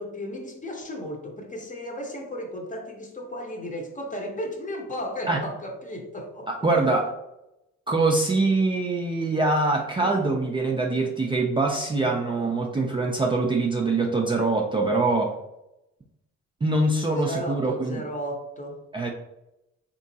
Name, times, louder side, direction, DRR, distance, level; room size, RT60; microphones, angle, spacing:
voice 1, 0.0-6.5 6.8-6.9 10.0-10.4 17.1-18.8, equal, 25° left, 2 dB, 0.8 m, -34 dB
voice 2, 6.5-7.1 7.9-15.3 16.6-18.0 18.9-19.1, right 3 dB, 15° right, 0 dB, 0.4 m, -24 dB
3.5 x 3.0 x 2.7 m, 0.89 s
cardioid pair, 90°, 30 cm